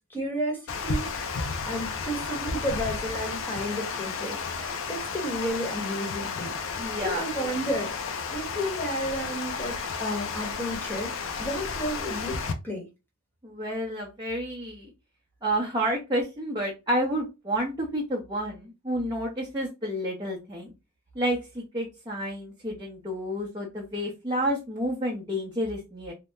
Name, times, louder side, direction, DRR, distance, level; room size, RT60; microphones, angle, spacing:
voice 1, 0.1-6.6 7.0-7.9 8.3-12.9, equal, 10° left, 1.0 m, -32 dB
Water, 0.7-12.5, left 5 dB, 65° left, 0.5 m, -33 dB
voice 2, 6.8-7.2 13.4-14.9 15.4-20.7 21.1-26.1, equal, 20° right, 0.7 m, -30 dB
2.8 x 2.0 x 3.3 m
head